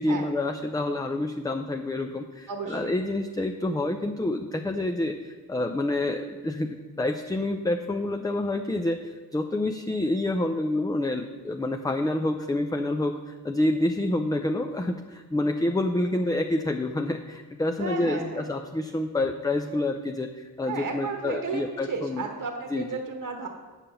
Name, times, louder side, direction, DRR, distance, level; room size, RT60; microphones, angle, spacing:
voice 1, 0.0-22.2 22.7-22.9, left 2 dB, 10° left, 5 dB, 0.4 m, -28 dB
voice 2, 2.5-2.9 17.8-18.5 20.7-23.5, right 4 dB, 55° right, 3 dB, 1.1 m, -33 dB
8.5 x 5.7 x 6.9 m, 1.4 s
wide cardioid pair, 105°, 38 cm